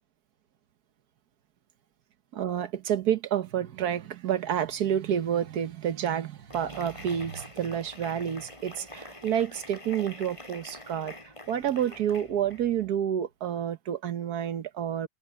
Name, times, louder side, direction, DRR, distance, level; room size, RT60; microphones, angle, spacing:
voice 1, 2.3-15.1, right 9 dB, 85° right, 1.6 m, -29 dB
sound 1, 6.5-13.0, left 1 dB, 20° left, 5.1 m, -46 dB
open air
omnidirectional pair, 1.6 m